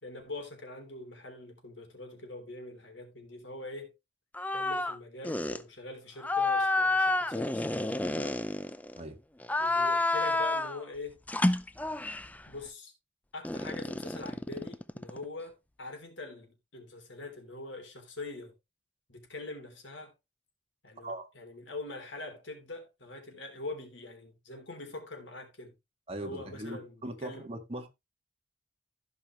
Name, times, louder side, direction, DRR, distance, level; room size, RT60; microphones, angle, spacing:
voice 1, 0.0-3.9 4.5-8.4 9.6-11.2 12.5-12.9 13.3-18.5 19.1-20.1 20.8-25.8 26.2-27.5, left 2 dB, 85° left, 3.5 m, -43 dB
sound 1, 4.3-5.0 5.2-5.6 6.2-9.0 9.4-10.8 11.3-12.4 13.4-15.2, left 2 dB, 10° left, 0.4 m, -29 dB
voice 2, 26.1-27.9, right 1 dB, 30° right, 1.8 m, -40 dB
16.0 x 5.4 x 3.1 m
head